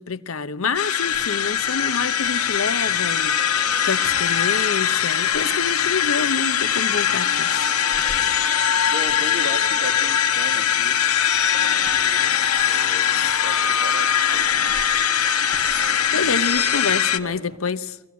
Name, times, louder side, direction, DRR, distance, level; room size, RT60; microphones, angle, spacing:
voice 1, 0.0-3.6 3.8-7.7 16.1-18.0, left 4 dB, 70° left, 0.9 m, -27 dB
sound 1, 0.7-17.2, left 9 dB, 90° left, 1.2 m, -21 dB
sound 2, 1.0-17.6, right 1 dB, 30° right, 2.6 m, -44 dB
voice 2, 8.9-11.0 11.5-14.8 15.7-16.4 16.7-17.5, right 1 dB, 85° right, 2.8 m, -37 dB
23.5 x 16.5 x 9.4 m
head